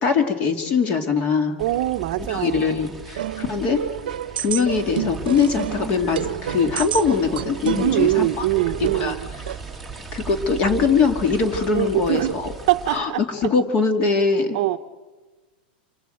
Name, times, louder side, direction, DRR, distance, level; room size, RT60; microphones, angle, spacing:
voice 1, 0.0-1.6 2.3-3.8 4.4-8.5 8.8-9.2 10.1-12.5 12.9-14.6, left 5 dB, 25° left, 6 dB, 2.5 m, -22 dB
sound 1, 1.6-13.0, right 4 dB, ahead, 1.9 m, -37 dB
voice 2, 1.6-2.8 7.8-9.3 11.7-13.2 14.5-14.8, right 15 dB, 45° right, 9 dB, 1.0 m, -23 dB
sound 2, 3.2-9.6, right 12 dB, 70° right, 1.0 m, -30 dB
28.0 x 24.0 x 7.9 m, 1.3 s
supercardioid pair, 175°, 5 cm